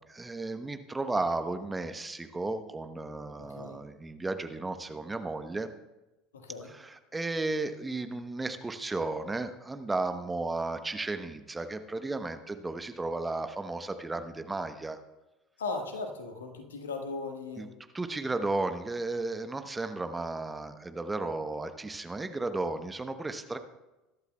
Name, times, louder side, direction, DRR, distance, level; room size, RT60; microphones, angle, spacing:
voice 1, 0.0-5.7 6.6-15.0 17.6-17.7 17.9-23.6, right 2 dB, 15° right, 8 dB, 1.0 m, -34 dB
voice 2, 3.4-3.8 6.3-6.7 15.6-17.7, left 3 dB, 80° left, 4 dB, 1.6 m, -37 dB
21.0 x 12.0 x 2.3 m, 1.0 s
figure-of-eight pair, 70°, 0 cm